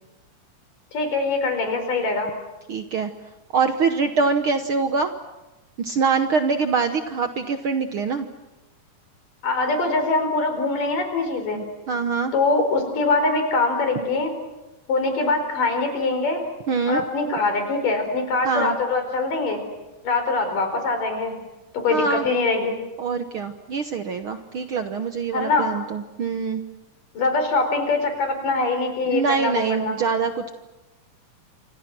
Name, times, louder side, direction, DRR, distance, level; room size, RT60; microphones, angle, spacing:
voice 1, 0.9-2.3 9.4-11.6 12.3-14.3 14.9-16.4 16.9-19.6 20.0-21.4 21.7-22.8 25.3-25.7 27.1-30.0, left 3 dB, 90° left, 6 dB, 6.2 m, -23 dB
voice 2, 2.7-3.1 3.5-5.1 5.8-8.3 11.5-12.3 16.7-17.0 18.4-18.8 21.9-22.3 23.0-26.6 29.1-30.5, right 5 dB, 65° right, 7 dB, 1.4 m, -24 dB
29.5 x 26.5 x 6.1 m, 1.1 s
omnidirectional pair, 3.7 m